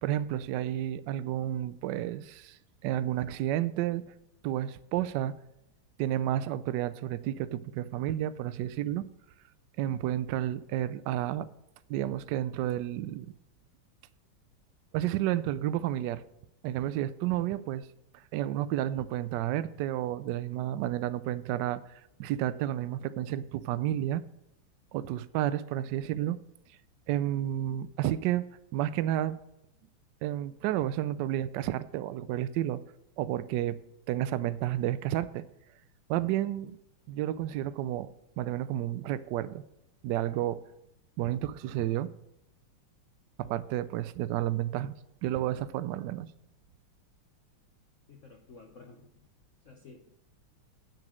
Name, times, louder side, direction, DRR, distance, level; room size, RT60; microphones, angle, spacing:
voice 1, 0.0-2.6 2.8-4.0 4.4-5.3 6.0-9.1 9.8-11.5 11.9-13.3 14.9-16.2 16.6-17.9 18.3-21.8 22.2-24.2 24.9-26.4 27.1-28.4 28.7-29.4 30.2-32.8 33.2-33.8 34.1-35.4 36.1-36.8 37.1-39.6 40.0-40.6 41.2-42.1 43.4-44.9 45.2-46.3, right 12 dB, 80° right, 1.0 m, -31 dB
voice 2, 48.1-49.1 49.6-50.2, left 4 dB, 60° left, 0.8 m, -52 dB
8.6 x 6.7 x 6.2 m
omnidirectional pair, 2.4 m